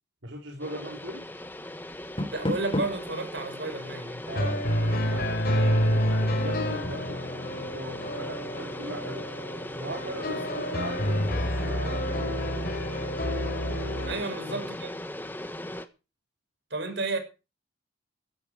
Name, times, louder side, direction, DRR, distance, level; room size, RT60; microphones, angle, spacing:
voice 1, 0.2-1.2 4.3-4.7 5.0-9.3 9.8-12.9 14.0-14.6, right 1 dB, 85° right, 4.2 m, -40 dB
sound 1, 0.6-15.9, left 1 dB, 10° left, 1.2 m, -39 dB
Door, 1.9-3.1, left 1 dB, 30° left, 3.3 m, -31 dB
voice 2, 2.3-4.2 10.3-10.4 14.0-14.9 16.7-17.2, right 3 dB, 65° right, 6.1 m, -32 dB
sound 2, 4.3-14.2, equal, 55° left, 4.3 m, -28 dB
15.5 x 14.0 x 4.8 m
head